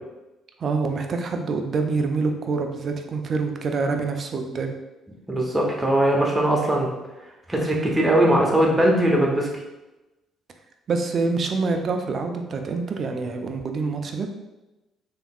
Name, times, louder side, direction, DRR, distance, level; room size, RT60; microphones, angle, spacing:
voice 1, 0.6-4.8 10.9-14.3, right 4 dB, 50° right, 5 dB, 0.4 m, -26 dB
voice 2, 5.3-6.9 7.5-9.5, right 1 dB, 20° right, -2 dB, 0.8 m, -20 dB
3.4 x 2.9 x 2.3 m, 1.0 s
hypercardioid pair, 50°, 0 cm